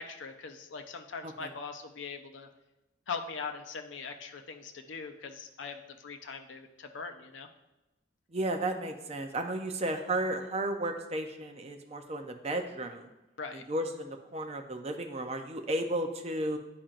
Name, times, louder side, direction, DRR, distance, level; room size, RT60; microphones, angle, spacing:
voice 1, 0.0-2.5 3.1-7.5 13.4-13.6, left 5 dB, 80° left, 6 dB, 0.6 m, -41 dB
voice 2, 8.3-13.1 13.5-16.6, right 1 dB, 35° right, 5 dB, 0.6 m, -34 dB
10.0 x 4.3 x 2.5 m, 0.98 s
head